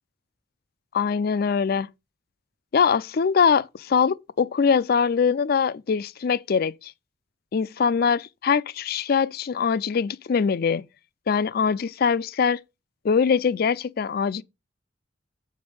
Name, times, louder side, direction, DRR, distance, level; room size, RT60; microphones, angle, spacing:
voice 1, 0.9-1.9 2.7-6.9 7.5-10.9 11.3-12.6 13.0-14.4, left 6 dB, 55° left, 0.4 m, -22 dB
7.6 x 5.3 x 5.3 m
head